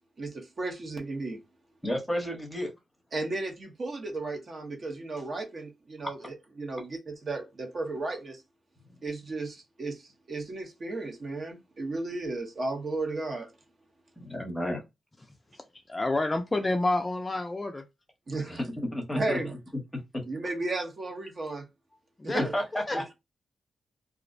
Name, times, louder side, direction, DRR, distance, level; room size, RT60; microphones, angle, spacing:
voice 1, 0.2-1.4 3.1-8.4 9.0-13.5 18.3-18.6 19.1-19.6 20.3-21.7 22.2-22.5 22.9-23.0, right 2 dB, 45° right, 0.7 m, -34 dB
voice 2, 1.8-2.7 14.2-14.8 18.5-18.6 18.9-19.4 22.5-23.1, left 1 dB, 5° left, 0.8 m, -31 dB
voice 3, 15.9-17.9 22.2-22.4 22.7-23.0, left 2 dB, 20° left, 0.3 m, -28 dB
2.4 x 2.0 x 2.5 m
wide cardioid pair, 115°, 0 cm